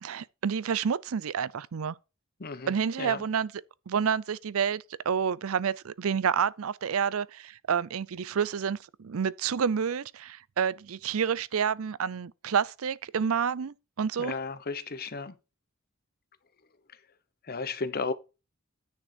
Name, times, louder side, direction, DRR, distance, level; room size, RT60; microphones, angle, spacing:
voice 1, 0.0-1.9 2.7-3.5 3.9-14.4, right 7 dB, 75° right, 0.5 m, -29 dB
voice 2, 2.4-2.7 3.0-3.2 14.2-15.3 17.5-18.1, left 4 dB, 45° left, 0.9 m, -33 dB
9.6 x 6.3 x 4.4 m
head